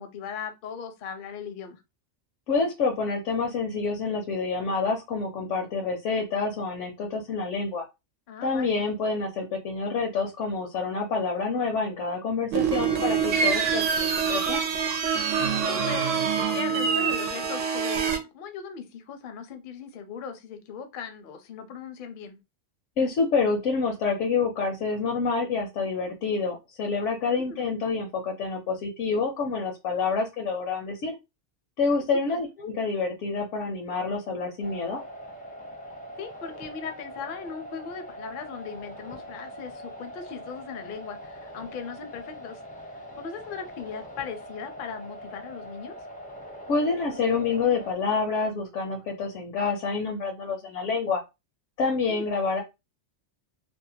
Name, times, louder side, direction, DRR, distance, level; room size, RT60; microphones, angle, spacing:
voice 1, 0.0-1.8 8.3-8.8 15.4-16.3 16.5-22.4 27.2-27.7 31.9-32.4 36.2-42.6 43.2-46.0 52.0-52.3, left 6 dB, 55° left, 0.6 m, -38 dB
voice 2, 2.5-7.8 8.4-14.6 23.0-31.2 31.8-35.0 46.7-51.2 51.8-52.6, left 4 dB, 80° left, 0.9 m, -27 dB
sound 1, 12.5-18.2, right 6 dB, 85° right, 0.9 m, -25 dB
sound 2, 34.6-47.9, equal, 10° left, 0.4 m, -42 dB
2.7 x 2.1 x 2.7 m
omnidirectional pair, 1.3 m